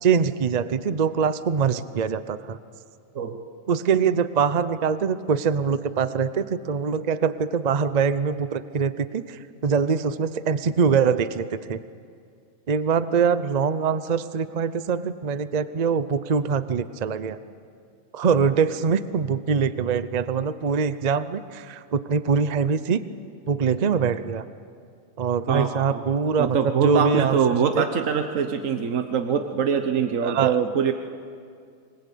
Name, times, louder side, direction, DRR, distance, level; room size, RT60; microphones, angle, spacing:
voice 1, 0.0-2.6 3.7-11.8 12.7-17.4 18.1-23.0 23.5-24.4 25.2-27.4 27.7-27.8 30.2-30.6, right 6 dB, 40° right, 13 dB, 0.7 m, -23 dB
voice 2, 25.5-26.0 26.4-30.9, right 7 dB, 75° right, 6 dB, 1.4 m, -23 dB
26.5 x 20.5 x 8.4 m, 2.2 s
omnidirectional pair, 1.4 m